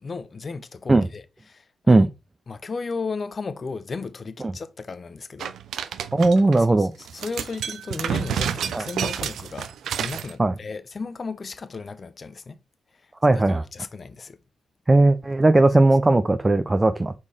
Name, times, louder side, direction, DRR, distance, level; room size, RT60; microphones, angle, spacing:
voice 1, 0.0-2.1 2.5-5.5 6.5-12.6 12.9-14.4, left 4 dB, 35° left, 0.6 m, -35 dB
sound 1, 5.4-6.6 7.0-10.3, right 8 dB, 80° right, 0.5 m, -29 dB
voice 2, 6.1-6.9 8.7-8.8 10.4-10.5 13.2-13.6 14.9-17.1, right 2 dB, 15° right, 0.5 m, -17 dB
5.5 x 4.3 x 4.8 m
wide cardioid pair, 130°, 0 cm